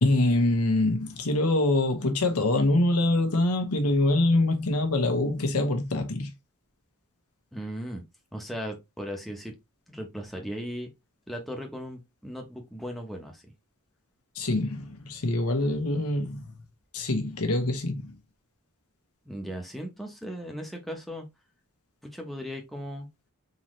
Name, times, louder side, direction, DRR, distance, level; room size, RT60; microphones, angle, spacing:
voice 1, 0.0-6.3 14.3-16.4 16.9-18.1, left 2 dB, 80° left, 1.0 m, -24 dB
voice 2, 7.5-8.0 8.3-9.5 9.9-10.9 11.3-13.5 19.3-21.3 22.1-23.1, equal, ahead, 0.9 m, -37 dB
3.9 x 2.9 x 3.1 m
head